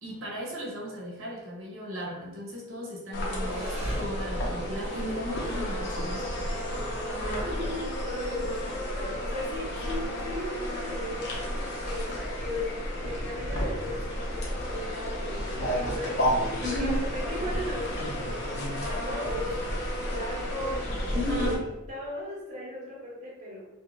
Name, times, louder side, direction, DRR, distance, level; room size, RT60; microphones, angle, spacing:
voice 1, 0.0-6.6 16.6-17.0 21.1-21.6, left 1 dB, 85° right, -3 dB, 0.8 m, -36 dB
sound 1, 3.1-21.5, equal, 55° left, 0.6 m, -31 dB
sound 2, 3.3-12.3, right 1 dB, 5° right, 0.8 m, -50 dB
voice 2, 7.2-11.4 11.8-19.6 20.0-23.7, left 1 dB, 35° right, -4 dB, 0.7 m, -37 dB
2.5 x 2.2 x 3.0 m, 1.0 s
head